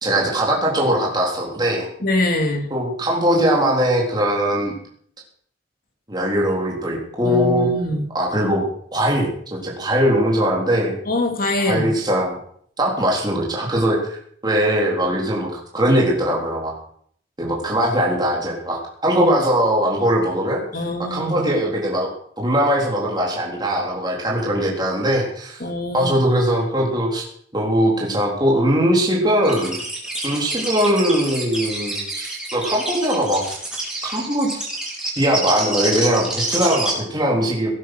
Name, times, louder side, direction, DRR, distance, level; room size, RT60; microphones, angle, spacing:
voice 1, 0.0-1.9 2.7-4.8 6.1-7.7 8.1-11.0 11.6-12.3 12.8-16.7 17.4-20.6 21.1-22.1 22.4-25.6 25.9-27.2 27.5-29.8 30.2-33.5 34.0-34.5 35.1-37.7, equal, 20° right, -3 dB, 3.8 m, -20 dB
voice 2, 2.0-2.7 7.2-8.1 11.1-12.0 20.7-21.4 25.6-26.2, left 1 dB, 50° left, 4 dB, 2.8 m, -23 dB
sound 1, 29.4-36.9, right 2 dB, 5° right, 4.4 m, -27 dB
18.0 x 9.4 x 6.2 m, 0.62 s
head